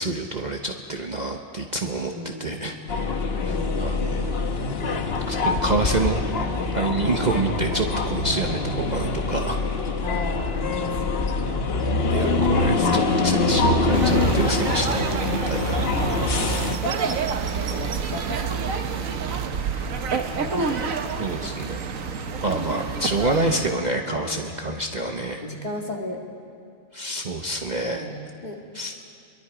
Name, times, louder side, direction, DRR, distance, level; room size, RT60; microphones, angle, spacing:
voice 1, 0.0-2.1 2.4-2.8 3.4-4.3 5.3-6.2 6.7-9.6 11.5-11.6 12.0-15.8 21.2-21.8 22.4-25.4 26.9-28.0 28.7-28.9, right 2 dB, 35° right, 2 dB, 1.0 m, -27 dB
voice 2, 2.1-2.7 3.5-3.8 7.0-7.3 10.0-11.7 16.3-16.4 16.8-19.2 19.9-21.5 23.4-24.5 25.0-25.1 25.4-26.2 27.8-28.6, left 1 dB, 35° left, 0 dB, 2.4 m, -36 dB
sound 1, 2.9-16.8, left 3 dB, 50° left, 1.3 m, -24 dB
sound 2, 13.9-19.5, right 10 dB, 55° right, 0.5 m, -33 dB
sound 3, 13.9-23.7, right 5 dB, 80° right, 1.5 m, -29 dB
26.0 x 22.5 x 5.0 m, 2.5 s
omnidirectional pair, 1.4 m